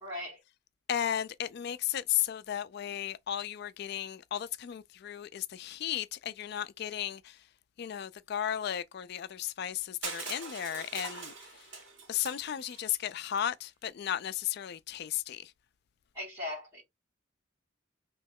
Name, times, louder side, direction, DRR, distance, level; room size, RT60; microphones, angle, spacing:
voice 1, 0.0-0.4 16.1-16.8, left 1 dB, 20° right, 2.0 m, -39 dB
voice 2, 0.9-7.3 7.8-11.3 12.1-15.5, left 10 dB, 55° left, 0.3 m, -34 dB
Crushing, 10.0-13.0, right 4 dB, 70° right, 1.8 m, -42 dB
3.2 x 3.0 x 3.5 m
head